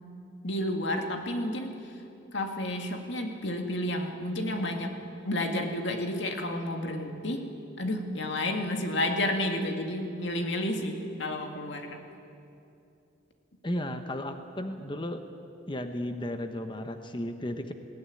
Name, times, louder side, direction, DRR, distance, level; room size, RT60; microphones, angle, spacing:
voice 1, 0.4-1.9 2.3-4.9 5.2-7.5 7.8-12.0, left 1 dB, 65° left, 4 dB, 2.0 m, -31 dB
voice 2, 13.6-15.2 15.7-17.7, left 1 dB, 25° left, 7 dB, 1.0 m, -34 dB
20.5 x 16.5 x 9.8 m, 2.8 s
head